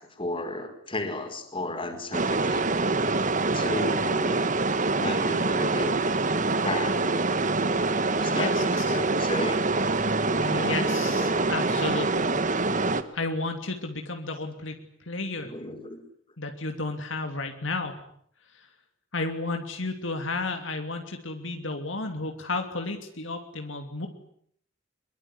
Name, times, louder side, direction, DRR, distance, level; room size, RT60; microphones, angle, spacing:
voice 1, 0.0-2.7 3.5-4.6 4.9-6.0 6.6-7.0 8.1-9.6 10.5-11.4 15.4-16.0, left 2 dB, 25° left, 6 dB, 4.9 m, -34 dB
sound 1, 2.1-13.0, right 3 dB, 40° right, 1.6 m, -25 dB
voice 2, 8.3-9.0 10.4-12.3 13.1-15.5 16.4-18.0 18.5-18.7 19.1-24.1, left 3 dB, 65° left, 5 dB, 2.9 m, -32 dB
24.0 x 22.5 x 9.9 m, 0.66 s
head